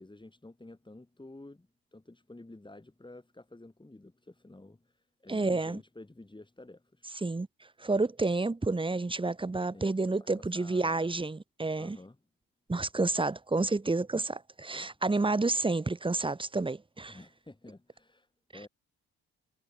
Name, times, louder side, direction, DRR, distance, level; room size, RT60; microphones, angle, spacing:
voice 1, 0.0-7.1 9.7-11.1 11.8-12.2 14.7-14.9 17.1-18.7, left 2 dB, 15° left, 7.2 m, -51 dB
voice 2, 5.3-5.8 7.2-7.5 7.8-12.0 12.7-17.2, right 3 dB, 15° right, 1.3 m, -30 dB
supercardioid pair, 65°, 33 cm